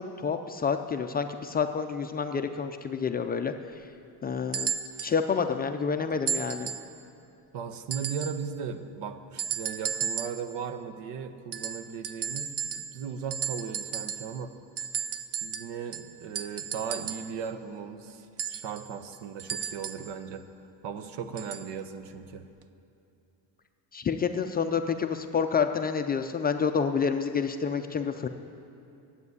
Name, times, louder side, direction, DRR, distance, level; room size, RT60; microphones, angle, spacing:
voice 1, 0.0-3.5 4.2-4.7 5.0-6.7 23.9-28.3, left 6 dB, 25° left, 6 dB, 0.3 m, -28 dB
sound 1, 4.5-5.2 6.3-6.9 7.9-8.4 9.4-10.5 11.5-13.0 13.3-14.4 14.8-17.4 18.4-20.1 21.4-21.7 22.6-22.7, right 7 dB, 35° right, 0.5 m, -34 dB
voice 2, 7.5-14.6 15.4-20.5 20.8-22.5, right 6 dB, 75° right, 10 dB, 1.0 m, -37 dB
12.0 x 8.1 x 9.5 m, 2.7 s
cardioid pair, 155°, 42 cm